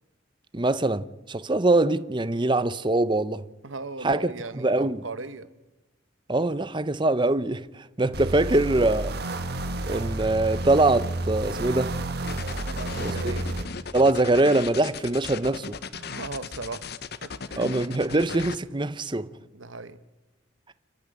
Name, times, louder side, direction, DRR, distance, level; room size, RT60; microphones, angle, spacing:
voice 1, 0.5-3.4 4.0-4.3 4.5-5.0 6.3-9.1 9.9-12.0 13.0-13.1 13.9-15.8 17.6-19.3, right 2 dB, 25° right, 0.7 m, -23 dB
voice 2, 3.6-5.5 12.6-13.5 15.9-17.0 17.2-17.7 19.5-20.0, right 3 dB, 85° right, 1.3 m, -38 dB
sound 1, 8.1-13.7, right 2 dB, 55° right, 1.6 m, -31 dB
sound 2, 12.3-18.6, left 5 dB, 55° left, 0.9 m, -37 dB
29.5 x 10.5 x 9.1 m
head